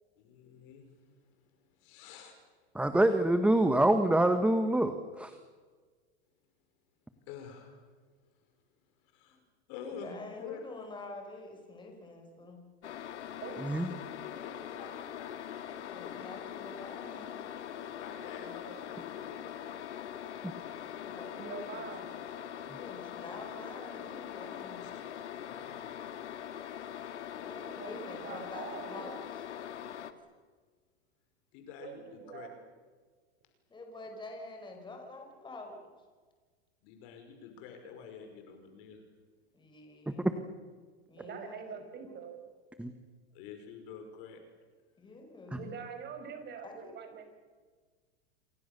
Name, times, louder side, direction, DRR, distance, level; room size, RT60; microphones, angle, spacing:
voice 1, 0.2-0.9 1.8-2.4 7.3-7.8 9.1-9.4 9.7-10.1 10.4-10.6 14.1-16.2 17.7-19.8 24.8-25.9 31.5-32.5 36.8-39.0 43.3-44.4, left 7 dB, 55° left, 5 dB, 5.5 m, -48 dB
voice 2, 2.7-5.4 13.6-13.9 20.4-20.5 40.1-40.3 42.8-42.9 45.5-45.6, right 1 dB, 5° right, 8 dB, 1.4 m, -26 dB
voice 3, 10.0-12.6 15.9-17.3 20.8-21.9 22.5-24.8 27.4-29.4 32.2-32.5 33.7-35.8 39.5-40.3 41.1-41.8 45.0-45.7 46.6-46.9, left 2 dB, 15° left, 3 dB, 5.4 m, -47 dB
sound 1, 12.8-30.1, left 9 dB, 85° left, 2.1 m, -42 dB
voice 4, 21.4-22.1 27.8-29.2 31.8-32.6 41.2-42.4 45.5-47.2, right 6 dB, 30° right, 6 dB, 5.9 m, -44 dB
28.5 x 24.0 x 6.9 m, 1.5 s
hypercardioid pair, 125°, 34 cm